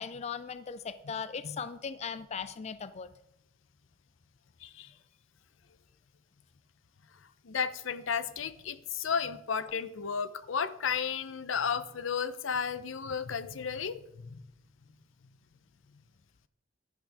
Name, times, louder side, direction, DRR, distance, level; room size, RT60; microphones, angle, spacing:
voice 1, 0.0-3.1, left 6 dB, 35° left, 13 dB, 0.4 m, -38 dB
voice 2, 4.6-4.9 7.4-14.4, left 6 dB, 85° left, 13 dB, 0.6 m, -33 dB
11.0 x 10.5 x 3.5 m, 0.82 s
head